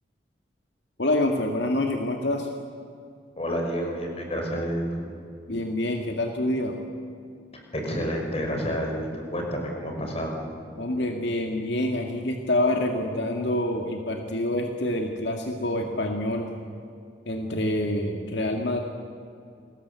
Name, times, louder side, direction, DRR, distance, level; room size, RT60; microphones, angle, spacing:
voice 1, 1.0-2.5 5.5-6.8 10.8-16.5 17.3-18.8, left 1 dB, 70° left, 3 dB, 2.1 m, -26 dB
voice 2, 3.4-5.1 7.7-10.3, equal, 35° left, 1 dB, 5.6 m, -29 dB
29.0 x 20.5 x 8.4 m, 2.4 s
head